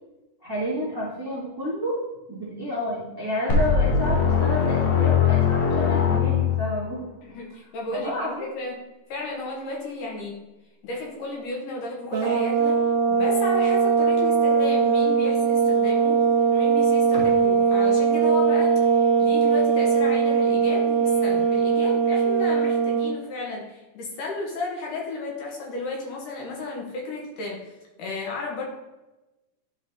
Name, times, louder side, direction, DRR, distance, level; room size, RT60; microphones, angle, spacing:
voice 1, 0.4-1.9 2.3-7.0 7.9-8.5 17.1-17.3, equal, 15° right, -6 dB, 0.7 m, -30 dB
sound 1, 3.5-6.7, left 6 dB, 70° left, 1.2 m, -21 dB
voice 2, 7.2-8.8 9.1-10.4 10.8-12.8 13.1-16.2 16.5-27.6 28.0-28.6, left 3 dB, 85° left, -2 dB, 2.9 m, -33 dB
sound 2, 12.1-23.2, right 6 dB, 80° right, 1.4 m, -20 dB
11.0 x 3.9 x 3.0 m, 1.0 s
omnidirectional pair, 3.6 m